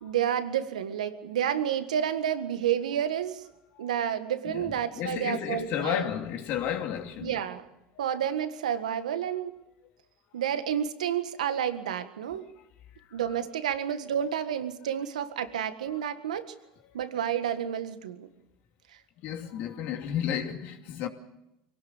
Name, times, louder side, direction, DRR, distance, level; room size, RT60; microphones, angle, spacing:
voice 1, 0.0-3.4 3.8-6.1 7.2-7.7 8.0-9.6 10.3-12.5 13.1-16.5 16.9-18.3, right 9 dB, 90° right, 1.7 m, -30 dB
voice 2, 4.4-7.4 13.0-13.1 19.2-21.1, left 9 dB, 60° left, 2.8 m, -32 dB
24.0 x 18.0 x 7.3 m
hypercardioid pair, 85°, 4 cm